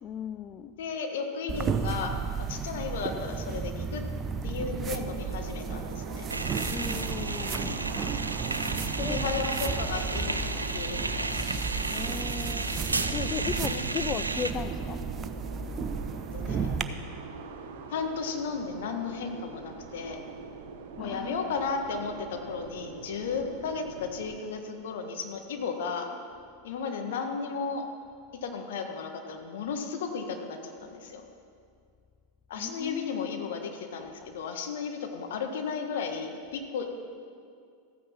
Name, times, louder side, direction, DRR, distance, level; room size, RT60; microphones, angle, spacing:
voice 1, 0.0-0.8 6.7-7.9 9.0-9.4 11.9-12.7 13.1-15.0 21.0-21.5 32.5-33.5 34.2-34.3, left 8 dB, 35° left, 9 dB, 0.5 m, -36 dB
voice 2, 0.8-4.0 4.4-6.3 9.0-10.5 10.7-11.4 13.7-13.8 16.3-16.7 17.9-20.2 21.0-26.1 26.6-27.8 28.4-31.2 32.5-36.9, left 5 dB, 65° left, 4 dB, 1.6 m, -34 dB
sound 1, 1.5-16.8, right 5 dB, 30° right, 0.7 m, -34 dB
sound 2, 4.8-24.4, right 5 dB, 60° right, 1.2 m, -42 dB
sound 3, 6.3-14.5, right 3 dB, 90° right, 0.5 m, -33 dB
14.5 x 9.3 x 5.8 m, 2.3 s
figure-of-eight pair, 90°, 0 cm